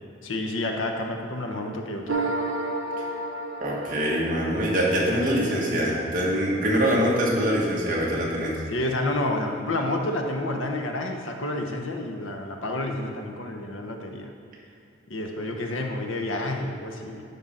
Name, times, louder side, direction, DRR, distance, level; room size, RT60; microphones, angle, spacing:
voice 1, 0.2-2.3 8.7-14.3 15.1-17.2, left 1 dB, 85° left, 3 dB, 0.9 m, -29 dB
sound 1, 2.1-5.5, right 2 dB, 80° right, 0.7 m, -31 dB
voice 2, 3.6-8.6, equal, 45° right, -5 dB, 1.8 m, -24 dB
11.5 x 5.6 x 3.8 m, 2.6 s
head